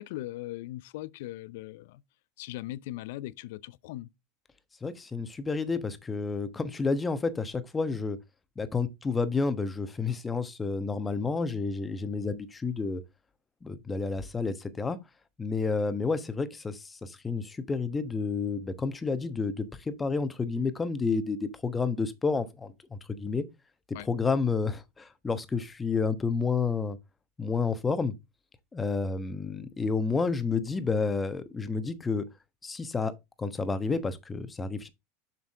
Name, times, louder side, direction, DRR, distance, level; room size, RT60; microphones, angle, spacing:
voice 1, 0.0-2.0 2.4-4.1 23.9-24.1, left 16 dB, 70° left, 0.5 m, -39 dB
voice 2, 4.8-8.2 8.6-13.0 13.6-15.0 15.4-23.4 23.9-27.0 27.4-28.1 28.7-32.3 32.6-34.9, left 4 dB, 20° left, 1.2 m, -30 dB
7.4 x 6.0 x 3.6 m
hypercardioid pair, 100°, 0 cm